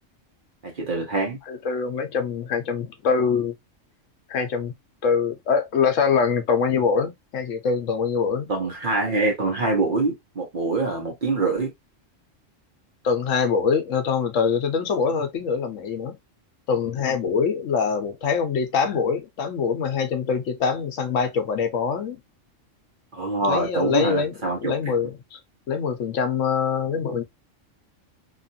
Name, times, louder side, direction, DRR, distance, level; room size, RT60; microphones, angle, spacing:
voice 1, 0.6-1.4 8.5-11.7 23.1-24.9, right 3 dB, 45° right, 1.0 m, -25 dB
voice 2, 1.5-3.5 4.3-4.7 5.0-8.5 13.0-16.2 16.7-22.2 23.4-25.4 25.7-27.2, left 6 dB, 75° left, 1.1 m, -24 dB
2.9 x 2.4 x 2.5 m
omnidirectional pair, 1.3 m